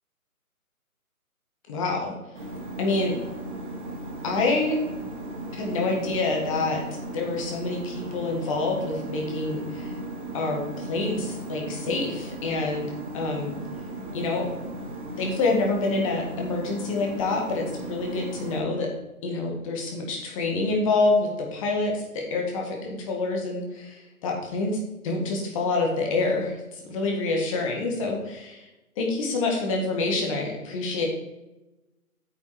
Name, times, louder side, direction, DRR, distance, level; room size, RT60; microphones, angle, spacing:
voice 1, 1.7-2.1 2.8-3.2 4.2-4.8 5.6-6.8 7.1-9.9 10.3-12.9 13.1-13.6 14.1-14.5 15.2-18.9 19.2-28.7 29.0-31.0, left 3 dB, 20° left, 0 dB, 1.9 m, -27 dB
sound 1, 2.3-18.6, right 1 dB, 35° right, 2.7 m, -36 dB
8.8 x 7.3 x 4.9 m, 1.0 s
figure-of-eight pair, 145°, 44 cm